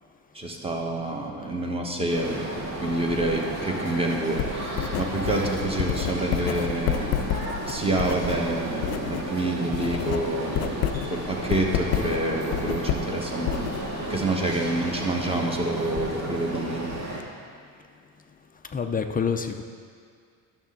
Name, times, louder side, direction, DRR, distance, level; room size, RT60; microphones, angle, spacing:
voice 1, 0.3-2.4 2.8-7.3 7.7-10.8 11.1-13.6 14.1-16.9, right 2 dB, 15° right, 0 dB, 1.4 m, -28 dB
sound 1, 2.1-17.2, right 1 dB, 50° right, 2.4 m, -33 dB
Writing, 4.3-9.3 9.6-14.2, left 10 dB, 75° left, 0.5 m, -30 dB
voice 2, 11.7-12.1 18.7-19.6, left 6 dB, 20° left, 6 dB, 0.5 m, -28 dB
11.0 x 6.8 x 3.9 m, 2.1 s
supercardioid pair, 85°, 40 cm